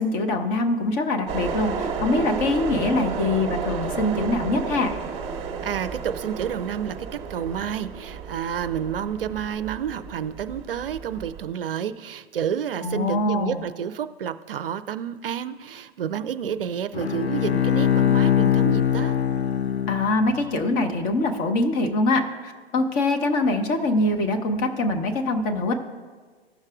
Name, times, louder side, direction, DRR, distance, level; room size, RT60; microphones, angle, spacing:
voice 1, 0.0-4.9 12.8-13.6 19.9-25.7, left 2 dB, 25° left, 5 dB, 0.8 m, -23 dB
sound 1, 1.3-11.5, right 6 dB, 20° right, 0.9 m, -32 dB
voice 2, 5.6-19.1, right 8 dB, 60° right, 10 dB, 0.5 m, -30 dB
Bowed string instrument, 16.9-20.5, left 9 dB, 85° left, 0.6 m, -22 dB
15.5 x 6.4 x 2.4 m, 1.5 s
figure-of-eight pair, 110°, 32 cm